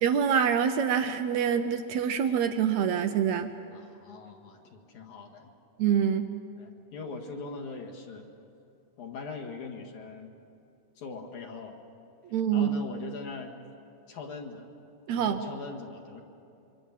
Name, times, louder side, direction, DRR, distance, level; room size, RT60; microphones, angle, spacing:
voice 1, 0.0-3.5 5.8-6.3 12.3-12.7 15.1-15.4, right 8 dB, 75° right, 8 dB, 1.7 m, -25 dB
voice 2, 3.7-5.5 6.6-8.3 9.0-10.3 11.0-11.8 12.5-13.5 14.1-14.7 15.1-16.2, left 4 dB, 60° left, 1 dB, 2.9 m, -41 dB
26.0 x 24.0 x 7.4 m, 2.7 s
omnidirectional pair, 4.2 m